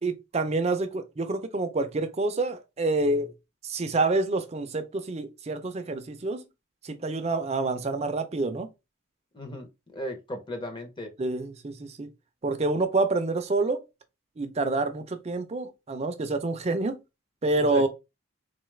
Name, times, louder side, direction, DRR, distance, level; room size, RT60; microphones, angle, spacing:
voice 1, 0.0-3.3 3.6-6.4 6.8-8.7 11.2-12.1 12.4-13.8 14.4-17.0 17.4-17.9, right 2 dB, 30° right, 0.4 m, -27 dB
voice 2, 9.3-11.1 17.5-17.9, equal, 20° left, 0.6 m, -36 dB
3.7 x 2.3 x 3.2 m
head